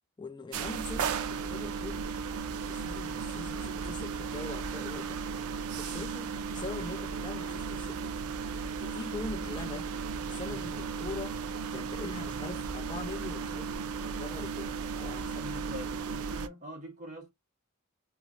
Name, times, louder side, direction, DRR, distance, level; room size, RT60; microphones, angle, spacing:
voice 1, 0.2-2.1 2.7-5.2 5.7-8.1 8.8-9.9 10.3-11.4 11.7-15.5, left 4 dB, 20° left, 0.4 m, -42 dB
sound 1, 0.5-16.5, right 5 dB, 80° right, 0.4 m, -35 dB
voice 2, 15.2-17.3, equal, 35° right, 1.4 m, -44 dB
3.1 x 2.6 x 2.4 m
head